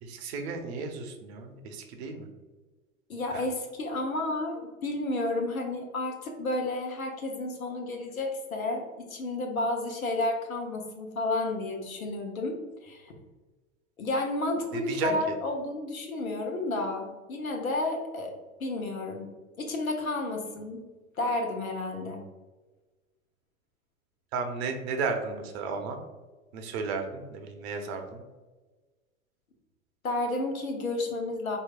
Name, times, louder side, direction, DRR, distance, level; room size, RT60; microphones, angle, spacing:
voice 1, 0.0-2.3 3.3-3.4 14.7-15.2 24.3-26.0 26.5-28.2, right 4 dB, 50° right, 5 dB, 0.7 m, -34 dB
voice 2, 3.1-13.1 14.0-18.3 18.6-19.3 19.6-20.8 21.2-22.2 30.0-31.6, left 2 dB, 85° left, 2 dB, 0.8 m, -31 dB
4.5 x 2.6 x 2.3 m, 1.3 s
hypercardioid pair, 95°, 41 cm